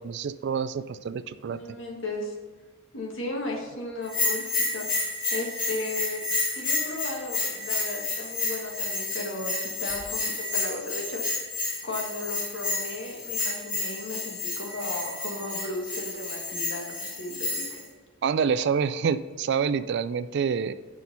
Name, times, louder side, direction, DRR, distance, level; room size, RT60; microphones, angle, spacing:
voice 1, 0.0-1.6 18.2-20.7, right 6 dB, 55° right, 14 dB, 0.3 m, -27 dB
voice 2, 1.5-2.4 2.9-4.9 5.3-6.2 6.5-11.4 11.8-17.7, left 2 dB, 65° left, 0 dB, 1.7 m, -35 dB
Bell, 4.1-17.8, left 3 dB, 40° left, 2.1 m, -30 dB
8.1 x 5.9 x 5.5 m, 1.3 s
head